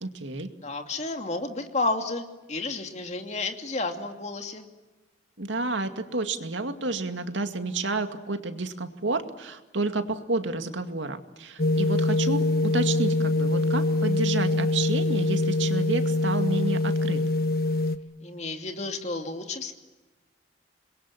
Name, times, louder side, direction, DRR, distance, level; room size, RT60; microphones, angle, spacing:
voice 1, 0.0-0.5 5.4-17.2, right 2 dB, 80° right, 7 dB, 2.3 m, -30 dB
voice 2, 0.6-4.7 18.2-19.7, left 3 dB, 35° left, 5 dB, 2.7 m, -31 dB
sound 1, 11.6-18.0, left 2 dB, 50° left, 1.3 m, -24 dB
27.5 x 22.0 x 9.9 m, 1.2 s
head